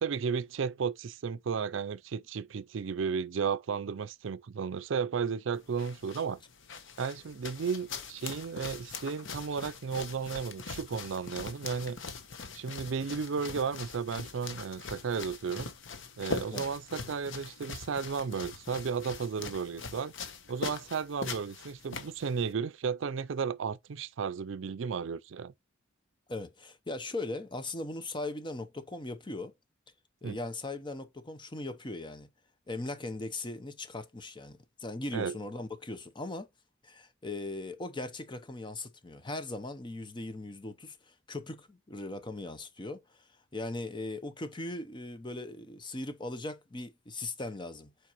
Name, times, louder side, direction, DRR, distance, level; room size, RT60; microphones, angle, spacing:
voice 1, 0.0-6.4 7.0-12.0 12.5-15.7 16.2-20.1 20.5-25.5 30.2-30.4 35.1-35.3, right 6 dB, 70° right, 0.4 m, -34 dB
sound 1, 5.5-22.5, left 4 dB, 70° left, 1.0 m, -42 dB
voice 2, 26.3-29.5 30.2-32.3 32.7-36.5 36.8-47.9, left 2 dB, 25° left, 0.8 m, -39 dB
7.3 x 4.7 x 3.0 m
head